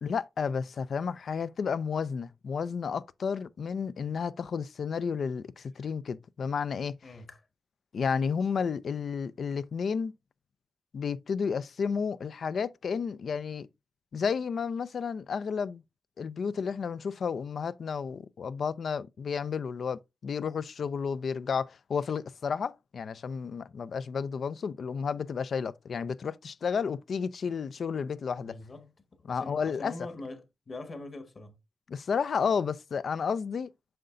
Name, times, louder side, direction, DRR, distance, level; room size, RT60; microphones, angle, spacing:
voice 1, 0.0-7.0 7.9-10.1 10.9-13.7 14.1-15.8 16.2-28.5 29.3-29.9 31.9-33.7, left 6 dB, 70° left, 0.4 m, -32 dB
voice 2, 7.0-7.4 28.4-28.9 29.3-31.6, left 2 dB, 55° left, 1.6 m, -43 dB
7.7 x 5.6 x 2.5 m
supercardioid pair, 45°, 0 cm